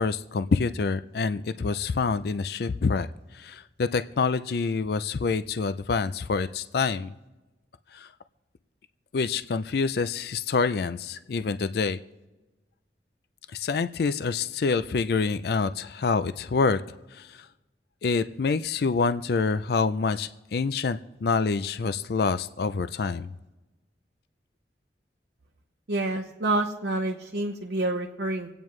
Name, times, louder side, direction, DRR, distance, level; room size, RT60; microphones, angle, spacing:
voice 1, 0.0-3.1 3.3-7.1 7.9-8.1 9.1-12.0 13.5-16.8 17.1-17.5 18.0-23.3, left 4 dB, 60° left, 12 dB, 0.4 m, -26 dB
voice 2, 25.9-28.5, right 2 dB, 70° right, 0 dB, 0.9 m, -28 dB
26.5 x 8.9 x 3.2 m, 1.1 s
head